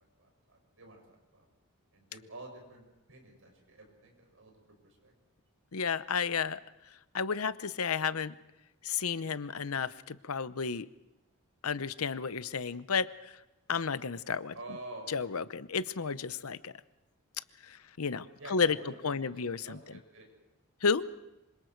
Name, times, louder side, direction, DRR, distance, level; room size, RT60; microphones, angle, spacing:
voice 1, 0.0-1.5 1.9-4.5 4.8-5.1 14.5-15.1 18.4-20.3, right 2 dB, 65° right, 2 dB, 7.0 m, -49 dB
voice 2, 5.7-6.6 7.1-8.3 8.8-10.9 11.6-13.1 13.7-14.5 15.1-16.7 17.7-18.8 19.0-19.8 20.8-21.0, left 5 dB, 85° left, 15 dB, 0.8 m, -32 dB
26.5 x 25.5 x 4.6 m, 0.98 s
head